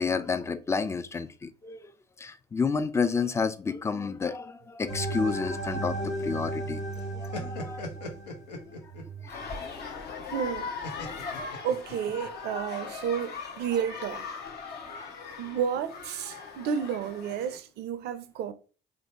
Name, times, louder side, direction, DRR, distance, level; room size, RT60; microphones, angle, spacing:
voice 1, 0.0-1.8 2.2-6.0 6.2-6.8 7.1-7.9 9.7-9.8 11.0-11.2 15.0-15.3, left 5 dB, 15° left, 0.4 m, -30 dB
sound 1, 4.9-8.9, right 1 dB, 35° left, 1.1 m, -35 dB
sound 2, 5.1-6.7 7.0-9.2 10.8-12.3, left 2 dB, 85° left, 0.6 m, -40 dB
voice 2, 9.1-9.5 10.3-10.7 11.6-14.3 15.4-18.5, right 8 dB, 55° right, 0.4 m, -31 dB
sound 3, 9.3-17.6, left 5 dB, 55° left, 0.7 m, -39 dB
3.2 x 2.6 x 2.9 m
hypercardioid pair, 55°, 21 cm